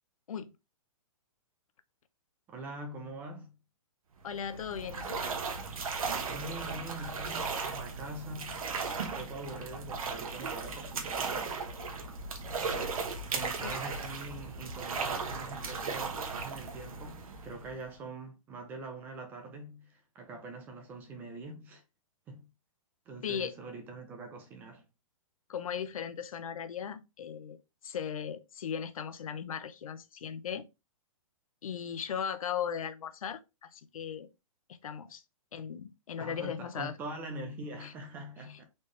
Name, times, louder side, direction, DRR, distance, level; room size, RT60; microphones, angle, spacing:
voice 1, 2.5-3.5 6.3-8.7 9.1-11.6 12.5-12.9 13.3-21.8 22.3-22.5 23.1-24.9 36.2-38.6, right 2 dB, 10° right, 0.5 m, -44 dB
voice 2, 4.2-5.2 13.6-13.8 23.2-23.6 25.5-27.6 27.8-30.7 31.6-34.3 34.7-35.2 35.5-37.0 37.8-37.9 38.5-38.6, left 8 dB, 80° left, 0.7 m, -37 dB
sound 1, 4.2-17.9, right 4 dB, 90° right, 1.3 m, -36 dB
4.2 x 3.5 x 3.2 m
hypercardioid pair, 170°, 18 cm